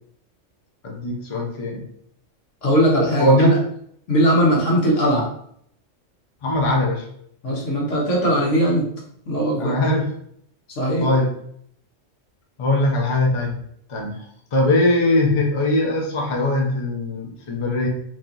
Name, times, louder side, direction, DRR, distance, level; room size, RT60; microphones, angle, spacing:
voice 1, 0.8-1.8 3.2-3.6 6.4-7.1 9.6-10.1 11.0-11.3 12.6-13.6 13.9-14.2 14.5-17.9, left 1 dB, 35° left, 0 dB, 0.6 m, -20 dB
voice 2, 2.6-3.6 4.1-5.3 7.4-8.9 9.3-9.8 10.8-11.1, equal, 75° left, -3 dB, 1.5 m, -19 dB
3.1 x 2.8 x 3.8 m, 0.67 s
omnidirectional pair, 1.3 m